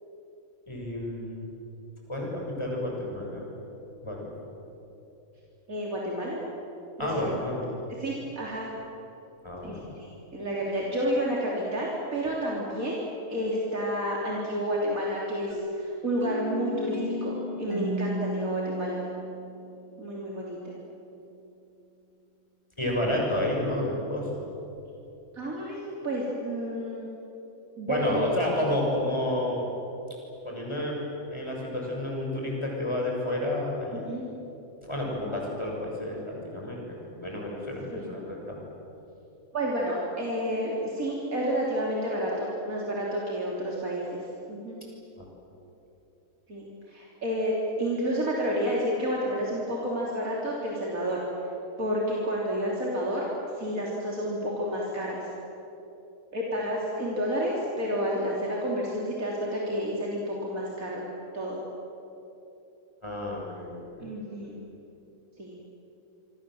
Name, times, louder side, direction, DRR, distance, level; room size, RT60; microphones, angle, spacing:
voice 1, 0.7-1.5 2.1-3.5 4.0-4.3 7.0-7.7 9.4-10.0 22.8-24.4 27.9-29.6 30.5-34.0 34.8-38.6 45.2-45.3 63.0-64.1, left 1 dB, 20° left, -2 dB, 6.9 m, -31 dB
voice 2, 5.7-6.4 7.0-7.4 8.0-8.7 9.6-13.0 13.3-19.0 20.0-20.7 25.3-27.1 27.8-28.3 28.6-28.7 34.1-34.3 37.9-38.0 39.5-44.8 46.5-51.3 51.8-53.3 53.6-55.3 56.3-61.1 61.3-61.6 64.0-64.6 65.4-65.6, equal, 80° right, -4 dB, 3.8 m, -30 dB
sound 1, 15.5-20.2, right 1 dB, 30° right, 2.7 m, -34 dB
27.5 x 24.5 x 7.8 m, 2.9 s
omnidirectional pair, 1.4 m